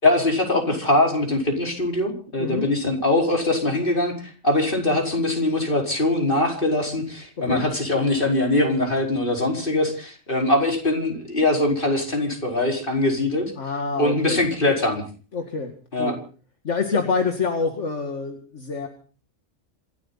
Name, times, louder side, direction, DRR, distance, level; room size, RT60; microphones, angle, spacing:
voice 1, 0.0-13.5 14.0-15.0 15.9-16.1, left 2 dB, 40° left, 2 dB, 5.0 m, -22 dB
voice 2, 2.4-2.7 7.4-7.6 13.6-14.4 15.3-15.7 16.0-16.2 16.6-18.9, left 4 dB, 65° left, 4 dB, 2.4 m, -26 dB
27.0 x 13.0 x 4.1 m, 0.40 s
omnidirectional pair, 1.3 m